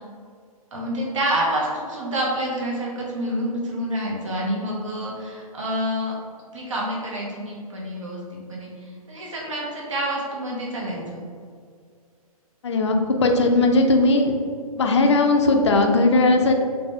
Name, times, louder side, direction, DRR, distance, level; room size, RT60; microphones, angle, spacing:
voice 1, 0.7-6.1 6.5-11.2, right 1 dB, 55° right, -3 dB, 1.1 m, -28 dB
voice 2, 12.6-14.3 14.8-16.5, left 2 dB, 50° left, 3 dB, 0.5 m, -18 dB
4.0 x 3.3 x 2.9 m, 2.1 s
figure-of-eight pair, 125°, 19 cm